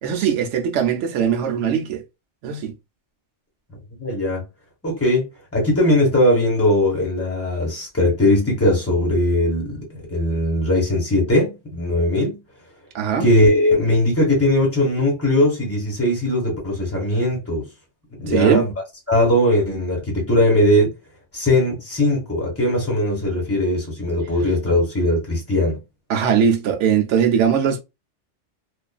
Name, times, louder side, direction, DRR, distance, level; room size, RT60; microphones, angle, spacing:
voice 1, 0.0-2.0 2.4-2.7 12.9-13.2 18.3-18.7 26.1-27.8, right 7 dB, 80° right, 0.9 m, -20 dB
voice 2, 4.0-4.4 4.8-5.2 5.5-12.4 13.2-17.7 18.2-18.6 19.1-20.9 21.3-25.8, left 1 dB, 15° left, 1.1 m, -19 dB
2.5 x 2.4 x 2.3 m
omnidirectional pair, 1.2 m